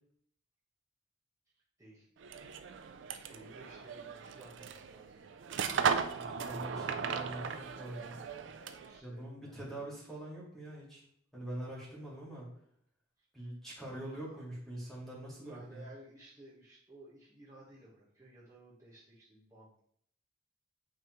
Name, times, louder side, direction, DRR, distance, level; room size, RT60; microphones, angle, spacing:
sound 1, 2.2-9.0, right 6 dB, 90° right, 0.4 m, -37 dB
voice 1, 3.3-5.4 8.4-9.9 13.2-13.3 13.9-14.4 15.4-19.8, right 1 dB, 20° right, -8 dB, 1.3 m, -56 dB
voice 2, 6.2-8.2 9.0-11.0 11.3-12.5 13.3-15.8, right 1 dB, ahead, -6 dB, 2.2 m, -44 dB
8.6 x 3.5 x 3.1 m, 0.68 s
head